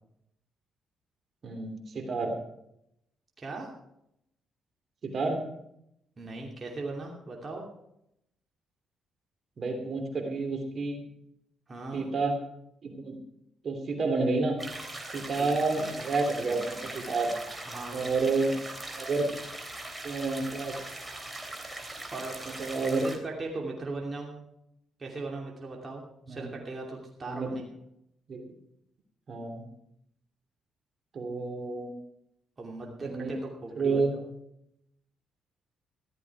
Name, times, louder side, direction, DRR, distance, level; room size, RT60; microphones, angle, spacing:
voice 1, 1.4-2.3 5.0-5.4 9.6-11.0 11.9-12.4 12.8-13.2 13.6-14.6 15.1-17.3 17.9-18.5 19.0-19.3 20.0-20.8 22.6-23.1 26.3-26.5 27.3-27.6 28.3-28.5 29.3-29.6 31.1-31.9 33.0-33.3 33.7-34.2, right 3 dB, 50° right, 4 dB, 3.0 m, -29 dB
voice 2, 3.4-3.7 6.2-7.7 11.7-12.1 15.4-15.5 17.6-18.1 22.1-22.4 23.0-24.4 25.0-27.6 32.6-34.0, right 3 dB, 35° right, -1 dB, 2.7 m, -38 dB
sound 1, 14.6-23.2, right 2 dB, 15° right, 2.9 m, -41 dB
15.0 x 12.5 x 4.8 m, 0.79 s
cardioid pair, 90°, 0 cm